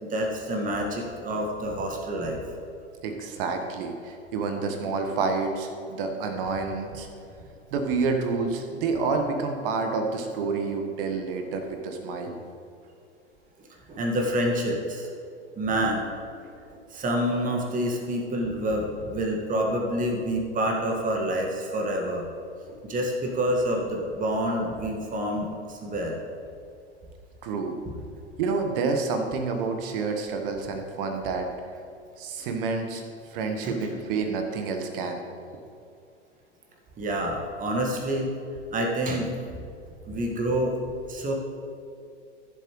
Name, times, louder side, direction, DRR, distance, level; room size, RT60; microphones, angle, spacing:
voice 1, 0.0-2.4 13.9-15.1 15.6-16.1 16.9-22.2 22.7-26.2 27.8-27.9 33.6-33.9 37.0-38.3 38.7-39.6 40.0-40.8 41.1-41.3, right 1 dB, 25° right, 1 dB, 1.8 m, -27 dB
voice 2, 3.0-7.1 7.7-12.3 27.4-27.7 28.4-31.5 32.2-33.0 33.3-35.2, right 4 dB, 50° right, 5 dB, 1.4 m, -28 dB
15.0 x 7.3 x 3.2 m, 2.4 s
figure-of-eight pair, 95°, 35 cm